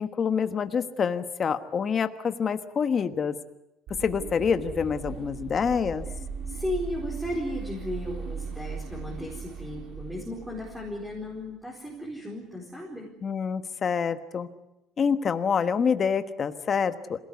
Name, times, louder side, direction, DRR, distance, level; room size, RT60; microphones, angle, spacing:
voice 1, 0.0-3.3 4.0-6.1 13.2-14.5 15.0-17.2, left 6 dB, 30° left, 10 dB, 1.3 m, -26 dB
sound 1, 3.9-11.3, right 5 dB, 50° right, 3.8 m, -38 dB
voice 2, 6.5-13.1, left 1 dB, 5° right, -3 dB, 4.4 m, -35 dB
27.0 x 18.0 x 9.6 m, 0.92 s
cardioid pair, 160°, 0 cm